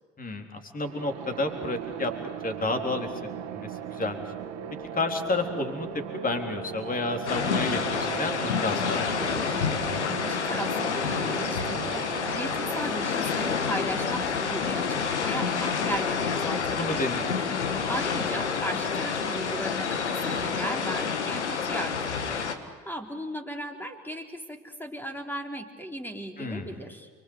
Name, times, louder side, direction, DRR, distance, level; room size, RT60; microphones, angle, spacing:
voice 1, 0.2-2.1 2.4-3.1 3.5-4.2 4.9-5.9 6.1-9.4 16.8-17.4 26.4-26.8, left 2 dB, 25° left, 5 dB, 3.8 m, -31 dB
sound 1, 0.8-15.5, right 9 dB, 50° right, 2.0 m, -39 dB
sound 2, 7.3-22.5, left 6 dB, 75° left, 1.8 m, -28 dB
voice 2, 10.2-17.0 17.5-27.1, equal, 5° left, 4 dB, 4.0 m, -36 dB
29.5 x 24.0 x 8.2 m, 1.5 s
figure-of-eight pair, 60°, 34 cm